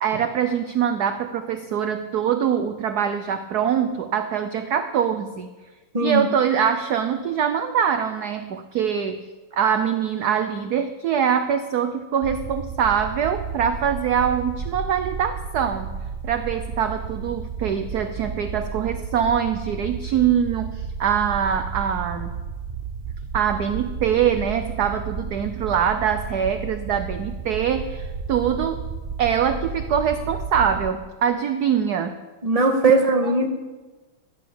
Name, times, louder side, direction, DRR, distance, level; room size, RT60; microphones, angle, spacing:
voice 1, 0.0-5.5 6.0-22.4 23.3-28.9 29.2-32.2, right 8 dB, 60° right, 9 dB, 1.2 m, -23 dB
voice 2, 5.9-6.3 32.4-33.5, right 3 dB, 20° right, 4 dB, 1.6 m, -19 dB
sound 1, 12.2-30.9, right 5 dB, 90° right, 0.4 m, -33 dB
16.5 x 11.0 x 7.0 m, 1.2 s
omnidirectional pair, 2.2 m